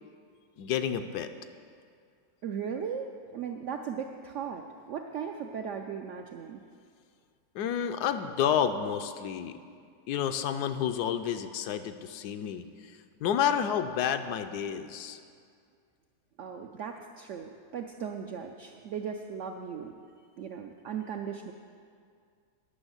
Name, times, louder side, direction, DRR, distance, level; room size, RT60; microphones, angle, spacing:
voice 1, 0.6-1.3 7.5-9.6 10.1-15.2, left 8 dB, 75° left, 9 dB, 1.1 m, -30 dB
voice 2, 2.4-6.6 16.4-20.0 20.4-21.5, right 7 dB, 75° right, 4 dB, 0.6 m, -37 dB
9.8 x 6.1 x 7.9 m, 2.2 s
omnidirectional pair, 1.8 m